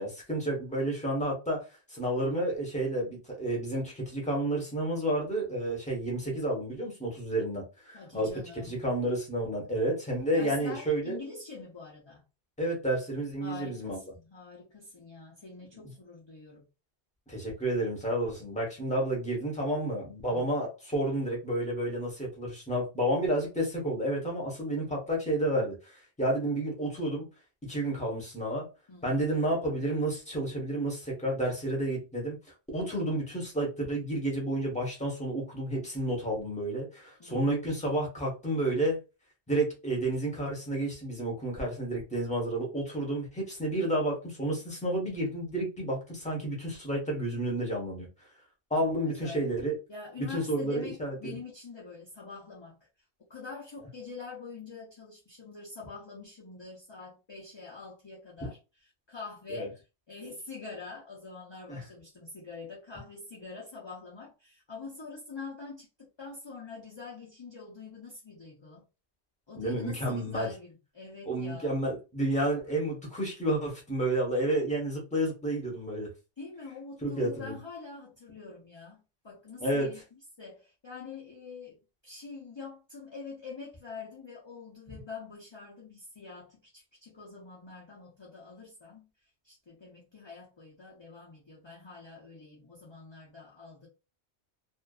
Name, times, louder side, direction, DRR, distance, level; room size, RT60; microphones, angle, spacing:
voice 1, 0.0-11.2 12.6-14.0 17.3-27.3 27.7-28.7 29.0-32.4 32.7-39.0 39.5-48.1 48.7-49.7 50.2-51.4 59.5-59.7 61.7-61.8 69.6-70.5 71.3-76.1 77.0-77.6 79.6-79.9, right 1 dB, 5° left, 0.8 m, -30 dB
voice 2, 7.9-8.8 10.3-12.2 13.4-16.7 20.3-20.6 28.9-29.3 37.2-37.7 49.2-49.4 49.9-52.8 53.3-58.6 59.1-59.8 60.1-68.9 69.5-71.7 76.4-81.8 82.0-89.1 89.4-93.9, left 4 dB, 30° left, 0.6 m, -45 dB
2.5 x 2.2 x 2.3 m
omnidirectional pair, 1.1 m